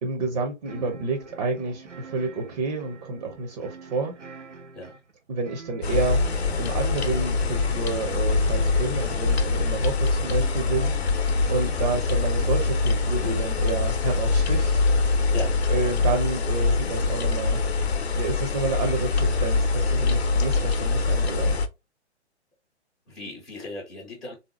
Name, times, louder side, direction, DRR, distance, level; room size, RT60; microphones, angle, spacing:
voice 1, 0.0-4.1 5.3-15.2 15.7-17.6 18.2-21.6, right 3 dB, 35° right, 0.6 m, -30 dB
sound 1, 0.6-13.4, right 4 dB, 90° right, 0.6 m, -45 dB
sound 2, 5.8-21.7, left 3 dB, 65° left, 0.7 m, -24 dB
voice 2, 23.1-24.3, left 2 dB, 5° left, 0.4 m, -36 dB
3.5 x 2.7 x 2.9 m
figure-of-eight pair, 120°, 35 cm